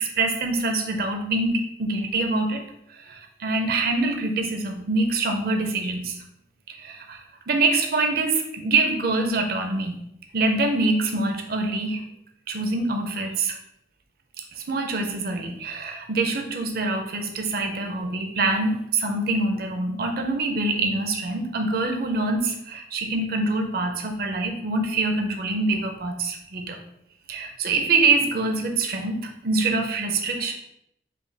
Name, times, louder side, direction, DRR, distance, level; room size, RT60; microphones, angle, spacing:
voice 1, 0.0-2.6 3.1-3.2 3.4-6.1 6.8-7.2 7.5-10.0 10.3-12.0 12.5-13.5 14.7-26.8 27.3-30.5, right 3 dB, 55° right, 4 dB, 0.5 m, -25 dB
4.9 x 2.2 x 3.3 m, 0.76 s
head